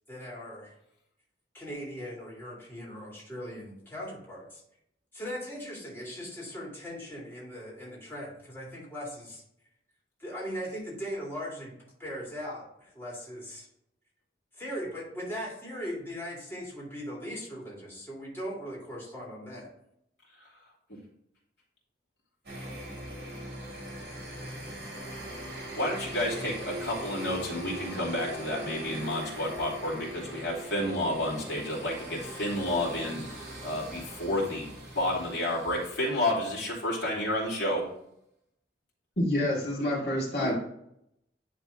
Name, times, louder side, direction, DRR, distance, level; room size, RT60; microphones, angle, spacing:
voice 1, 0.1-0.7 1.5-4.6 5.1-9.4 10.2-11.7 12.0-13.7 14.5-19.7, equal, 15° left, -5 dB, 2.2 m, -39 dB
sound 1, 22.4-37.2, right 1 dB, 60° right, 2.8 m, -41 dB
voice 2, 25.8-33.2 33.6-34.7 34.9-37.9 40.4-40.5, left 1 dB, 85° left, -5 dB, 2.9 m, -30 dB
voice 3, 39.2-40.5, left 1 dB, 65° left, -5 dB, 2.1 m, -27 dB
10.0 x 3.5 x 3.7 m, 0.76 s
head